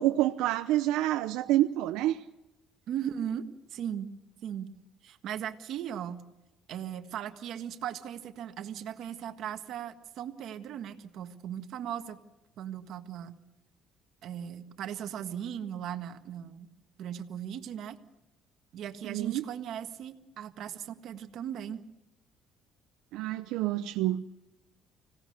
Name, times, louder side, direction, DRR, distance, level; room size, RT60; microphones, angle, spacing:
voice 1, 0.0-2.2 19.0-19.4 23.1-24.2, right 14 dB, 90° right, 7 dB, 0.8 m, -28 dB
voice 2, 2.9-4.1 4.4-4.7 5.0-6.2 6.7-12.2 12.6-13.4 14.2-16.7 17.0-18.0 18.7-21.8, right 9 dB, 60° right, 7 dB, 1.6 m, -38 dB
25.5 x 17.5 x 6.7 m, 0.96 s
cardioid pair, 135°, 0 cm